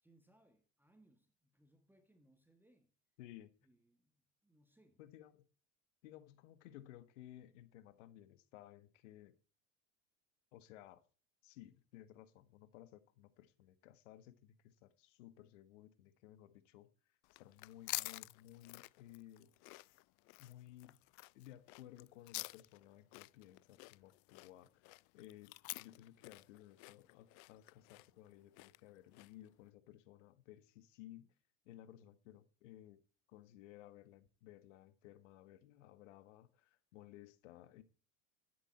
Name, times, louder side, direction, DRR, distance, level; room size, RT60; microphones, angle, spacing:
voice 1, 0.0-2.9 3.6-5.0, right 1 dB, 5° right, 1.6 m, -71 dB
voice 2, 3.2-3.5 5.0-5.5 6.0-9.3 10.5-11.0 11.4-16.9 17.3-19.5 19.8-19.9 20.4-21.0 21.3-24.9 25.1-31.3 31.6-33.0 33.3-37.8, left 13 dB, 70° left, 1.6 m, -58 dB
sound 1, 17.2-29.5, left 28 dB, 50° left, 0.5 m, -49 dB
12.0 x 10.0 x 4.2 m
hypercardioid pair, 85°, 38 cm